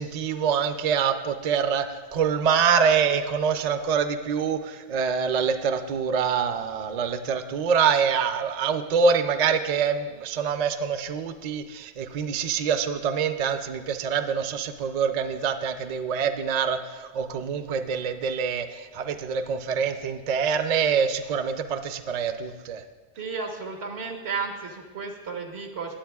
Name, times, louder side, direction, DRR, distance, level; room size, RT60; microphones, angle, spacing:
voice 1, 0.0-22.8, right 6 dB, 50° right, 8 dB, 0.5 m, -25 dB
voice 2, 23.2-25.9, right 5 dB, 90° right, 1 dB, 1.5 m, -33 dB
18.5 x 7.8 x 2.3 m, 1.4 s
omnidirectional pair, 1.1 m